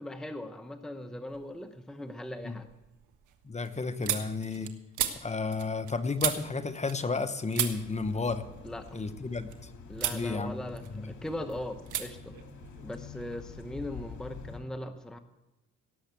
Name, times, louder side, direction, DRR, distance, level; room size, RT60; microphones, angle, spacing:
voice 1, 0.0-2.7 8.6-9.0 9.9-12.3 12.8-15.2, left 1 dB, ahead, 8 dB, 0.8 m, -39 dB
sound 1, 1.3-1.8 2.2-7.3 7.5-9.6 9.9-10.3 10.6-11.3 11.9-12.1 12.3-13.4, right 11 dB, 80° right, 1.5 m, -36 dB
voice 2, 3.4-4.7 5.2-8.4 8.9-9.5 10.1-10.6 10.9-11.1, left 4 dB, 20° left, 10 dB, 1.0 m, -32 dB
sound 2, 7.8-14.6, left 5 dB, 70° left, 2.6 m, -46 dB
17.5 x 7.2 x 8.2 m, 0.99 s
cardioid pair, 90°, 30 cm